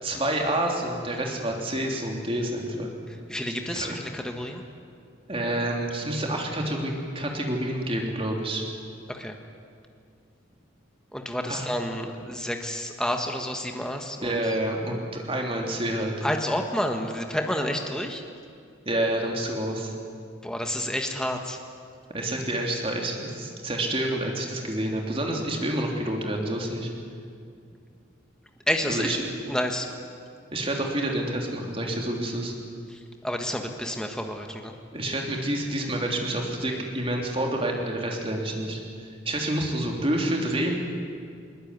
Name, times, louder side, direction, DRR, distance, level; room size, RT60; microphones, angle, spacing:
voice 1, 0.0-2.9 3.7-4.0 5.3-8.6 11.5-11.6 14.2-16.1 18.8-19.9 22.1-26.9 28.9-29.3 30.5-32.5 34.9-40.7, right 1 dB, 25° right, 1 dB, 3.3 m, -28 dB
voice 2, 3.1-4.6 9.1-9.4 11.1-14.4 16.2-18.2 20.4-21.6 28.7-29.2 29.5-29.9 32.9-34.7, equal, 5° left, 3 dB, 1.6 m, -30 dB
21.0 x 21.0 x 9.6 m, 2.2 s
head